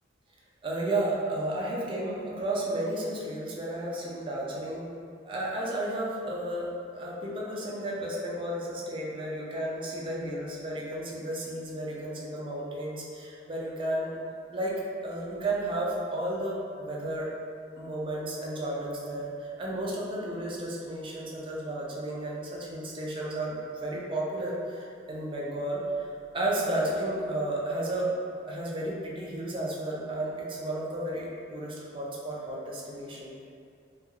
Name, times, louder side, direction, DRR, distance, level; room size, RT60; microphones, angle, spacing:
voice 1, 0.6-4.9 5.3-14.1 14.5-14.7 15.0-17.3 17.8-28.1 28.4-33.3, right 1 dB, 25° right, -4 dB, 0.4 m, -33 dB
2.8 x 2.3 x 2.3 m, 2.3 s
head